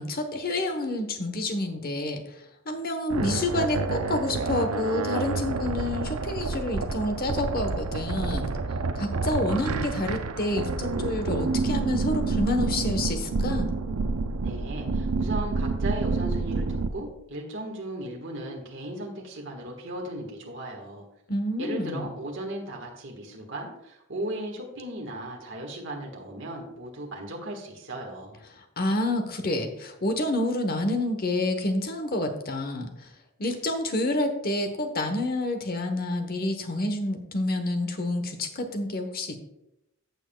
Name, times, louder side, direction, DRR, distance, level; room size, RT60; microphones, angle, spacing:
voice 1, 0.0-8.5 8.9-13.7 21.3-22.1 28.8-32.9 33.4-39.4, left 1 dB, 45° left, 6 dB, 1.0 m, -28 dB
sound 1, 3.1-16.9, right 3 dB, 85° right, 0.6 m, -28 dB
voice 2, 14.4-21.1 21.6-28.4, right 1 dB, 55° right, 0 dB, 1.6 m, -36 dB
14.5 x 7.1 x 2.3 m, 0.85 s
head